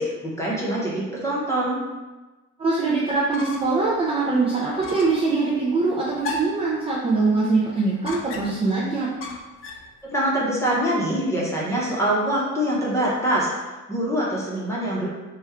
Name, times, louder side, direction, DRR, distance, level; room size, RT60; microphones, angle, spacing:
voice 1, 0.0-1.8 10.0-13.5 13.9-15.1, right 1 dB, 10° left, -5 dB, 0.8 m, -24 dB
voice 2, 2.6-9.1, right 3 dB, 20° right, -6 dB, 0.4 m, -23 dB
sound 1, 3.1-3.9 4.2-4.3 4.8-5.3 6.2-6.7 8.0-8.7 9.2-9.9, left 3 dB, 50° left, 0.4 m, -34 dB
4.3 x 2.2 x 3.5 m, 1.2 s
cardioid pair, 180°, 29 cm